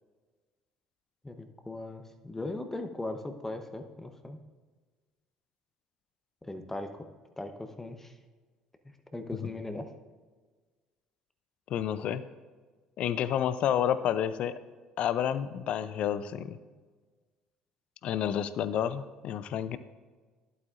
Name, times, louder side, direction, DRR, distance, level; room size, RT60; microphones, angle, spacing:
voice 1, 1.2-4.4 6.4-7.0 7.4-8.1 9.1-9.9, left 2 dB, 15° left, 7 dB, 0.8 m, -38 dB
voice 2, 11.7-12.2 13.0-14.5 15.0-16.6 18.0-19.8, left 10 dB, 55° left, 14 dB, 0.4 m, -30 dB
11.0 x 8.1 x 2.5 m, 1.4 s
hypercardioid pair, 60°, 2 cm